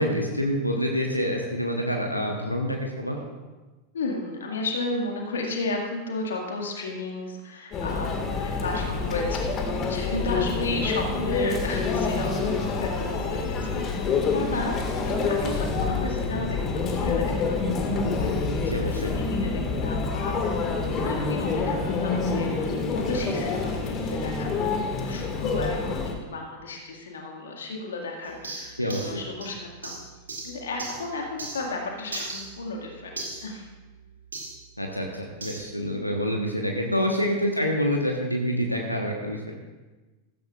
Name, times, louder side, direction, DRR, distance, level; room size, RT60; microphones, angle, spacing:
voice 1, 0.0-3.2 18.7-19.1 28.8-29.2 34.8-35.1 35.4-39.5, equal, 85° left, 2 dB, 1.1 m, -27 dB
voice 2, 3.9-9.5 9.9-14.8 15.2-20.4 21.0-30.0 30.4-33.7 36.8-37.0 38.7-38.8, left 2 dB, 65° left, 1 dB, 2.0 m, -33 dB
Conversation / Chatter / Crowd, 7.7-26.1, left 4 dB, 30° left, 1.8 m, -27 dB
sound 1, 28.2-31.8 32.1-34.6 35.4-35.7, right 3 dB, 75° right, 2.3 m, -39 dB
15.5 x 14.0 x 2.5 m, 1.2 s
figure-of-eight pair, 90°, 0 cm